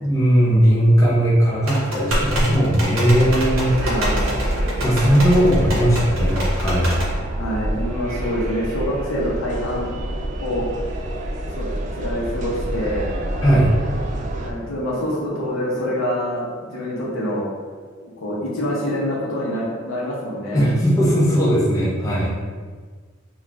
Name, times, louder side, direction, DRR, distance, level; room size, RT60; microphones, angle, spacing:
voice 1, 0.0-3.8 4.8-7.0 13.4-13.7 20.5-22.4, equal, 15° left, -7 dB, 0.5 m, -18 dB
sound 1, 1.7-7.1, equal, 80° right, 0.7 m, -27 dB
sound 2, 3.2-14.5, right 1 dB, 35° right, 0.3 m, -27 dB
voice 2, 3.8-4.4 7.4-9.9 10.4-10.7 11.6-11.7 12.0-13.1 14.4-17.5 18.0-20.7, equal, 85° left, -4 dB, 0.7 m, -26 dB
2.4 x 2.4 x 3.1 m, 1.5 s
head